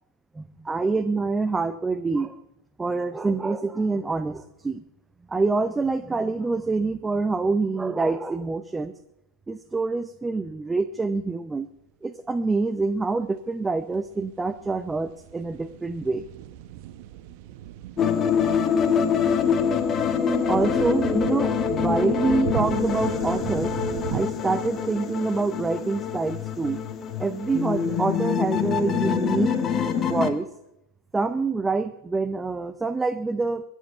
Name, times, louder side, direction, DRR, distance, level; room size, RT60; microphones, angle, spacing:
voice 1, 0.3-2.4 2.8-4.8 5.3-8.9 9.5-11.7 12.0-16.2 20.5-23.8 24.1-26.8 27.2-29.6 30.0-30.5 31.1-33.6, right 3 dB, 10° right, 12 dB, 0.6 m, -26 dB
sound 1, 12.5-12.7 13.0-13.1 13.5-24.2, right 12 dB, 45° right, 1.0 m, -37 dB
sound 2, 18.0-30.3, left 7 dB, 25° left, 1.3 m, -25 dB
22.5 x 8.3 x 5.7 m, 0.85 s
figure-of-eight pair, 90°, 0 cm